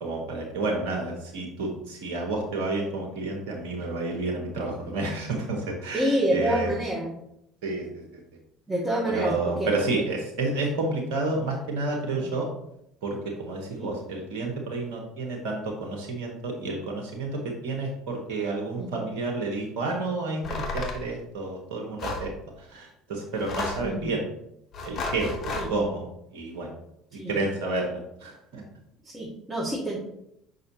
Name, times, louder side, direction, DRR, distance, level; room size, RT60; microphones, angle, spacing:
voice 1, 0.0-6.7 7.6-8.0 9.1-12.5 13.0-22.3 22.7-24.2 24.8-26.0 26.3-26.7 27.1-28.6, right 2 dB, 70° right, 0 dB, 1.3 m, -30 dB
voice 2, 5.9-7.1 8.7-10.0 13.8-13.9 18.8-18.9 23.8-24.2 25.5-25.7 27.2-27.4 29.0-30.0, right 1 dB, 10° right, -5 dB, 1.6 m, -28 dB
sound 1, 20.4-21.0 22.0-22.3 23.3-23.9 24.7-25.7, left 3 dB, 50° left, 1.1 m, -32 dB
6.5 x 5.5 x 2.8 m, 0.77 s
hypercardioid pair, 60°, 0 cm